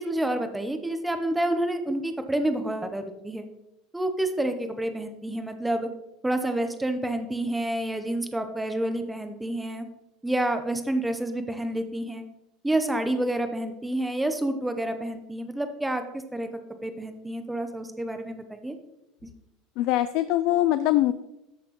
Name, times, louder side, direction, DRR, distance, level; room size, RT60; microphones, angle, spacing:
voice 1, 0.0-3.5 3.9-5.9 6.2-9.9 10.2-12.3 12.6-16.5 16.8-18.8 19.2-19.3, right 1 dB, 5° right, 7 dB, 0.6 m, -29 dB
voice 2, 19.8-21.1, left 14 dB, 50° left, 12 dB, 0.3 m, -22 dB
13.5 x 5.8 x 2.9 m, 0.91 s
cardioid pair, 175°, 0 cm